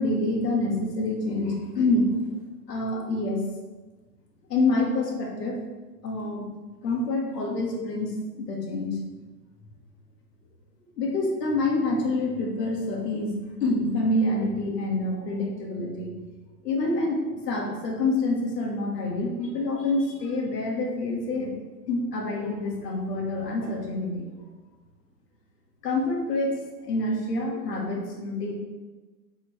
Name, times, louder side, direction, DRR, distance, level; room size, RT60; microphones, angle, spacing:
voice 1, 0.0-2.2 2.7-3.4 4.5-5.6 6.0-6.4 6.8-9.0 11.0-13.4 13.6-16.1 16.6-21.5 21.9-24.3 25.8-28.5, left 2 dB, 80° left, 0 dB, 1.8 m, -27 dB
8.3 x 4.4 x 3.2 m, 1.3 s
hypercardioid pair, 165°, 48 cm